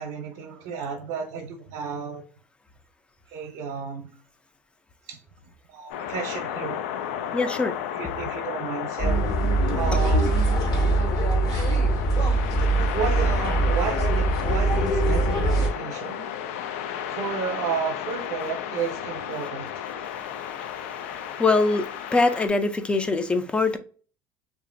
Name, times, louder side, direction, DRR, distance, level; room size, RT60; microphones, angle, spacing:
voice 1, 0.0-2.2 3.3-4.1 5.1-5.2 5.7-6.8 7.9-9.2 9.7-10.3 12.9-16.3 17.1-19.7, right 6 dB, 70° right, 3 dB, 0.6 m, -32 dB
sound 1, 5.9-22.5, left 9 dB, 85° left, 0.3 m, -33 dB
voice 2, 7.3-7.8 19.9-23.8, left 3 dB, 15° left, 9 dB, 0.4 m, -24 dB
sound 2, 9.0-15.7, right 2 dB, 55° left, 1.3 m, -22 dB
2.8 x 2.4 x 2.5 m, 0.41 s
supercardioid pair, 105°, 7 cm